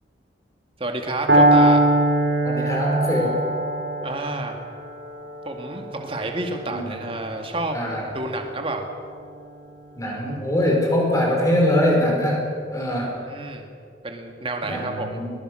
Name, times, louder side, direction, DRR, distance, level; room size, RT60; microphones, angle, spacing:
voice 1, 0.8-1.8 4.0-4.5 5.4-7.8 8.1-8.9 13.2-13.7 14.0-15.2, right 2 dB, 30° right, 3 dB, 2.4 m, -29 dB
Piano, 1.3-9.2, right 1 dB, 85° right, 4.5 m, -22 dB
voice 2, 2.4-3.4 6.6-7.0 7.7-8.1 9.9-12.4 12.7-13.2 14.6-15.3, left 1 dB, 20° left, -1 dB, 5.1 m, -22 dB
21.5 x 19.5 x 6.5 m, 2.3 s
head